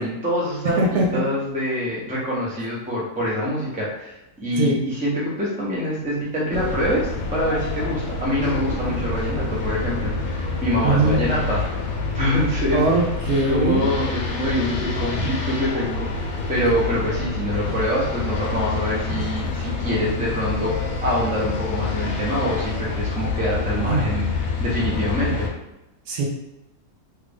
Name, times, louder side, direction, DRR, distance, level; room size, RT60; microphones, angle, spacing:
voice 1, 0.0-11.6 12.1-13.0 13.4-25.5, equal, 10° right, -6 dB, 0.4 m, -25 dB
sound 1, 6.2-6.3 7.1-7.2 7.6-7.8 8.3-10.0 10.7-11.5 11.9-12.0 12.8-12.9 13.1-15.7 16.1-17.6 18.4-18.5 19.0-19.7 20.1-20.2 20.8-21.1 21.7-22.7 23.1-23.2 23.4-23.5, right 1 dB, 45° left, 0.7 m, -39 dB
sound 2, 6.5-25.5, left 3 dB, 70° left, 1.1 m, -27 dB
voice 2, 10.5-11.2 12.7-13.8 23.9-24.1 26.1-26.3, right 2 dB, 70° right, -1 dB, 1.0 m, -21 dB
3.2 x 2.4 x 3.4 m, 0.92 s
omnidirectional pair, 1.8 m